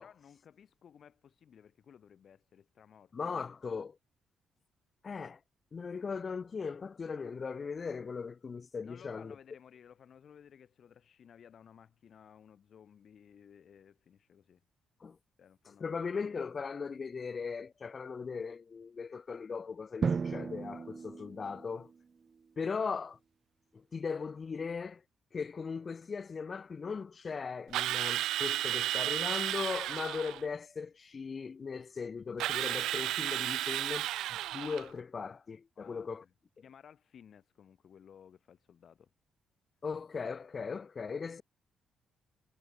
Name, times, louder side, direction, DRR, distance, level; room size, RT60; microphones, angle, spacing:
voice 1, 0.0-3.4 8.8-14.6 15.4-16.1 35.8-36.3 36.6-39.1, left 8 dB, 55° left, 2.1 m, -57 dB
voice 2, 3.1-4.0 5.0-5.4 5.7-9.4 15.0-15.2 15.8-21.9 22.6-23.2 23.7-25.0 25.3-36.2 39.8-41.4, left 5 dB, 40° left, 1.0 m, -38 dB
Drum, 20.0-21.9, right 5 dB, 40° right, 0.5 m, -35 dB
Drill, 27.7-30.4 32.4-34.9, right 14 dB, 85° right, 0.5 m, -33 dB
cardioid pair, 90°, 0 cm